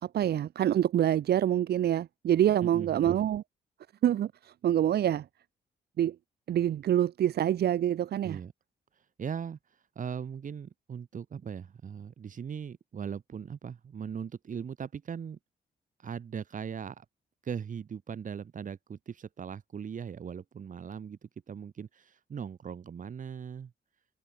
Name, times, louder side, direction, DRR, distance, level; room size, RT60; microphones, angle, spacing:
voice 1, 0.0-3.4 4.0-5.2 6.0-6.1 6.5-8.4, right 11 dB, 75° right, 3.3 m, -26 dB
voice 2, 2.6-3.2 8.2-8.5 9.2-9.6 10.0-15.4 16.0-17.0 17.4-23.7, right 7 dB, 50° right, 6.0 m, -39 dB
cardioid pair, 100°, 17 cm